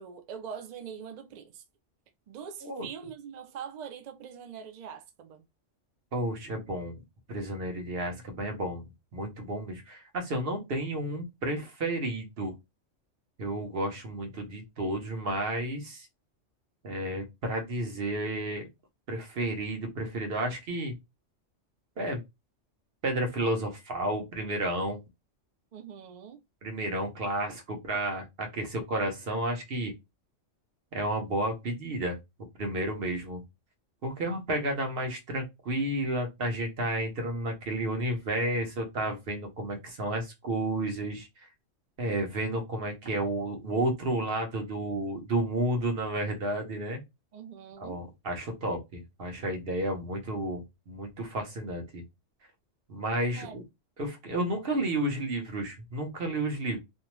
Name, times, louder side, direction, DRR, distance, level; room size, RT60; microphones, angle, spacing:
voice 1, 0.0-1.6 2.3-5.4 25.7-26.4 47.3-48.0 53.3-53.6, right 7 dB, 70° right, 0.4 m, -43 dB
voice 2, 6.1-7.0 7.3-8.8 9.1-12.5 13.4-16.1 16.8-18.7 19.1-20.9 22.0-22.2 23.0-25.0 26.6-29.9 30.9-32.2 32.6-33.4 34.0-41.3 42.0-47.0 47.8-52.0 52.9-53.6 54.0-56.8, right 1 dB, 55° right, 1.0 m, -31 dB
2.7 x 2.1 x 2.9 m
omnidirectional pair, 1.3 m